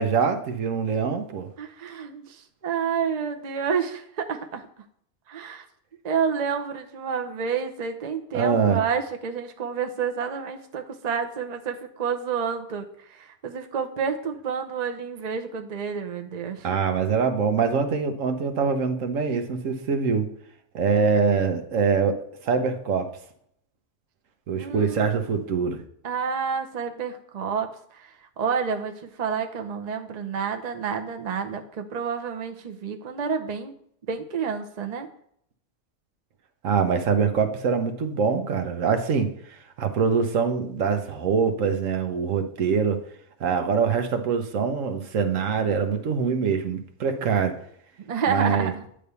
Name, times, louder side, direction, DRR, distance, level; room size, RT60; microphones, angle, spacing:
voice 1, 0.0-1.5 8.3-8.8 16.6-20.3 20.7-23.1 24.5-25.8 36.6-43.0 43.4-47.6 48.3-48.7, right 5 dB, 80° right, 7 dB, 1.2 m, -24 dB
voice 2, 1.6-4.7 5.3-5.7 6.0-16.7 24.6-25.4 26.0-33.7 34.1-35.1 48.0-48.8, right 6 dB, 40° right, 5 dB, 0.7 m, -29 dB
9.9 x 3.4 x 6.8 m, 0.67 s
omnidirectional pair, 1.3 m